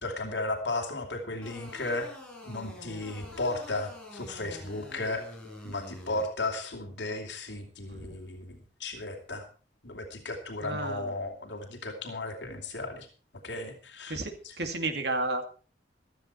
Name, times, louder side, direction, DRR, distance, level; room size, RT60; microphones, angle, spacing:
voice 1, 0.0-2.1 2.4-5.2 5.6-9.4 9.8-13.1 13.4-14.2 14.4-14.5, left 2 dB, 80° left, 3 dB, 2.9 m, -35 dB
sound 1, 1.4-6.2, left 1 dB, 5° left, 5.4 m, -46 dB
voice 2, 10.6-11.1 14.1-15.4, right 2 dB, 65° right, 6 dB, 2.4 m, -32 dB
15.5 x 13.0 x 4.4 m, 0.38 s
head